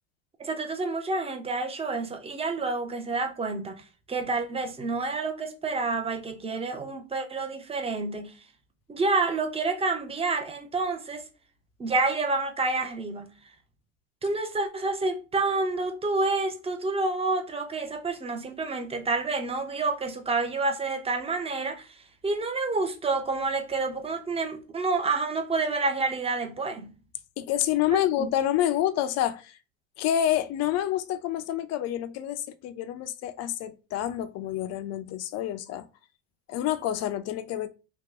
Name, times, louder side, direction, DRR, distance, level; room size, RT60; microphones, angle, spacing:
voice 1, 0.4-3.8 4.1-8.4 8.9-11.3 11.8-13.3 14.2-22.0 22.2-27.0 27.9-28.3, right 3 dB, 15° right, 0.8 m, -28 dB
voice 2, 27.4-29.6 30.0-35.9 36.5-37.7, left 11 dB, 45° left, 0.6 m, -28 dB
2.9 x 2.2 x 3.7 m
supercardioid pair, 105°, 38 cm